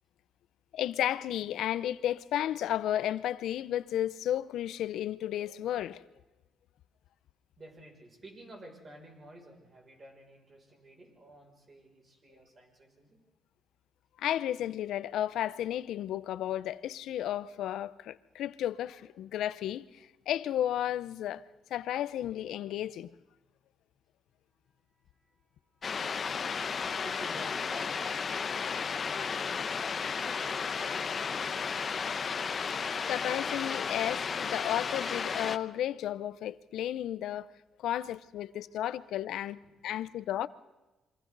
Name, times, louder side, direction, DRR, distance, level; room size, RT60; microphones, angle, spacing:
voice 1, 0.7-6.0 14.2-21.4 21.7-23.1 33.1-37.5 37.8-40.5, left 11 dB, 80° left, 0.7 m, -33 dB
voice 2, 7.6-13.2 25.1-25.5 25.7-31.3 38.5-38.6 39.6-40.1, right 1 dB, 35° right, 6.7 m, -53 dB
sound 1, 25.8-35.6, left 6 dB, 45° left, 0.9 m, -33 dB
27.5 x 24.5 x 4.1 m
cardioid pair, 90°, 0 cm